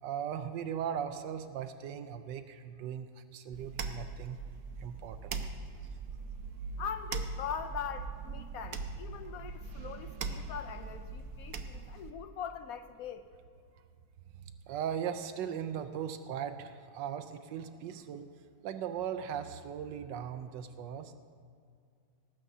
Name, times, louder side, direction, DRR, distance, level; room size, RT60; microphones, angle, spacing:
voice 1, 0.0-4.4 4.8-5.4 14.4-18.3 18.6-21.1, right 8 dB, 85° right, 9 dB, 1.3 m, -38 dB
sound 1, 3.5-12.1, right 4 dB, 60° right, 1.1 m, -41 dB
voice 2, 6.8-13.2, left 7 dB, 70° left, 9 dB, 0.9 m, -41 dB
18.5 x 15.5 x 2.7 m, 2.3 s
omnidirectional pair, 1.9 m